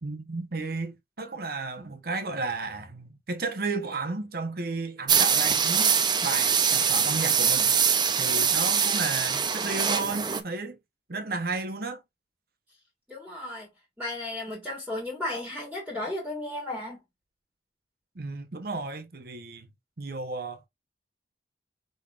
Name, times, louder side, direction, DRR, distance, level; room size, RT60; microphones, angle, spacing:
voice 1, 0.0-5.9 6.2-7.8 8.2-10.8 11.1-12.0 18.1-19.7 20.0-20.7, right 3 dB, 55° right, 0.9 m, -33 dB
sound 1, 5.1-10.4, right 7 dB, 25° right, 0.6 m, -23 dB
voice 2, 13.1-13.7 14.0-17.0, left 1 dB, 5° right, 1.7 m, -34 dB
5.3 x 3.9 x 2.4 m
head